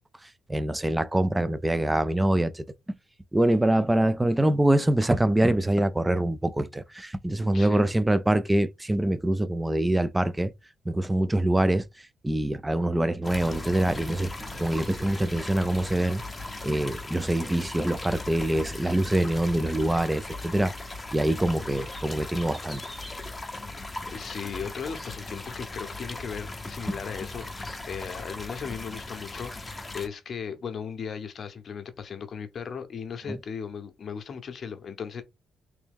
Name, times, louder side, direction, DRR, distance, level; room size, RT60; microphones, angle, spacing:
voice 1, 0.5-2.7 3.3-10.5 10.9-11.9 12.2-14.3 14.6-16.2 16.6-20.7 21.1-22.8 33.3-33.4, right 1 dB, 10° right, 0.4 m, -24 dB
voice 2, 7.5-7.9 21.5-21.8 23.8-35.2, left 6 dB, 50° left, 0.8 m, -37 dB
sound 1, 13.2-30.1, left 2 dB, 20° left, 0.7 m, -38 dB
sound 2, 13.2-16.9, right 3 dB, 40° right, 1.0 m, -51 dB
3.2 x 3.0 x 3.5 m
cardioid pair, 90°, 0 cm